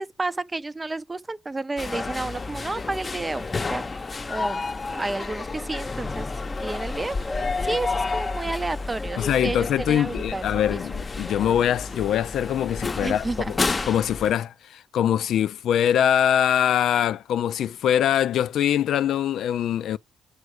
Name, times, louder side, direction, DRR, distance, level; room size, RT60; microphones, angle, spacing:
voice 1, 0.0-3.8 4.3-4.6 4.9-6.3 6.6-10.8 13.0-13.5, right 2 dB, 20° right, 0.6 m, -31 dB
sound 1, 1.8-14.3, left 3 dB, 30° left, 0.8 m, -30 dB
voice 2, 9.2-13.6 13.9-20.0, left 10 dB, 75° left, 0.4 m, -23 dB
8.1 x 4.9 x 4.8 m
cardioid pair, 90°, 0 cm